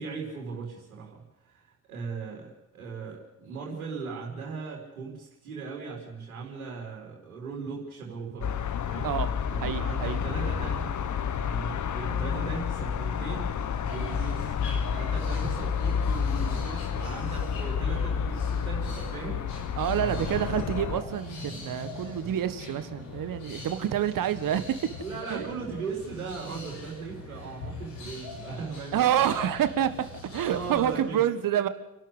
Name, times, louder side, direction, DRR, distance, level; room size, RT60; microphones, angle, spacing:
voice 1, 0.0-9.1 9.5-10.9 11.4-13.5 13.8-19.4 20.0-20.3 25.0-29.2 30.3-31.3, right 5 dB, 80° right, -1 dB, 4.4 m, -38 dB
sound 1, 8.4-21.0, left 7 dB, 45° left, 1.6 m, -30 dB
voice 2, 9.6-10.2 19.8-24.6 25.3-25.5 28.9-29.9 30.3-31.7, right 10 dB, 50° right, 12 dB, 1.7 m, -27 dB
sound 2, 13.8-31.0, left 2 dB, 70° left, 6.7 m, -42 dB
29.0 x 12.0 x 8.2 m, 0.93 s
figure-of-eight pair, 50°, 42 cm